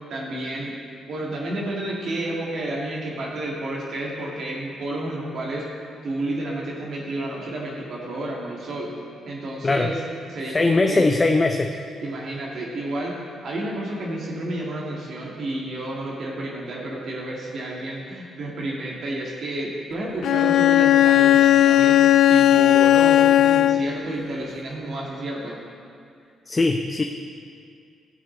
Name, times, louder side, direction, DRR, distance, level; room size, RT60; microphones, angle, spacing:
voice 1, 0.1-0.8 1.1-5.6 6.0-8.9 9.3-10.0 10.3-11.1 12.0-22.0 22.3-25.6, right 1 dB, 60° right, -3 dB, 1.8 m, -30 dB
voice 2, 10.4-11.8 26.5-27.0, left 3 dB, 35° left, 4 dB, 0.6 m, -20 dB
Bowed string instrument, 20.2-24.0, left 12 dB, 70° left, 0.3 m, -16 dB
15.0 x 6.7 x 4.2 m, 2.3 s
hypercardioid pair, 45°, 0 cm